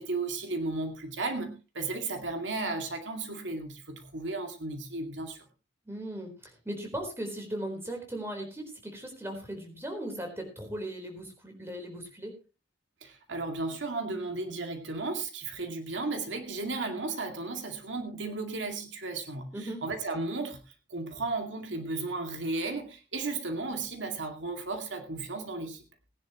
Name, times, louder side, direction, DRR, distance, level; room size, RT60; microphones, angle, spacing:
voice 1, 0.0-5.4 13.0-20.6 20.9-25.8, right 3 dB, 75° right, 4 dB, 2.3 m, -34 dB
voice 2, 5.9-12.3 19.5-19.8, right 1 dB, 15° right, 3 dB, 4.1 m, -38 dB
20.5 x 10.5 x 3.0 m, 0.30 s
head